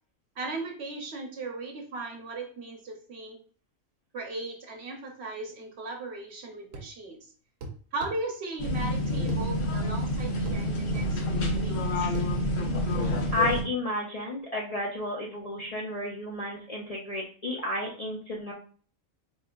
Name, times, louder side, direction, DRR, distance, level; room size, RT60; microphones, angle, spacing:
voice 1, 0.4-3.4 4.1-7.3 7.9-12.1, right 2 dB, 55° right, 2 dB, 1.1 m, -37 dB
sound 1, 6.7-7.0 7.6-8.2 9.3-9.5 10.5-10.6 11.0-11.1 12.2-12.3, right 3 dB, 80° right, 1.0 m, -39 dB
sound 2, 8.6-13.6, left 1 dB, 75° left, 1.1 m, -28 dB
voice 2, 13.3-18.5, left 2 dB, 55° left, -3 dB, 0.4 m, -32 dB
4.2 x 3.1 x 2.3 m, 0.43 s
omnidirectional pair, 1.4 m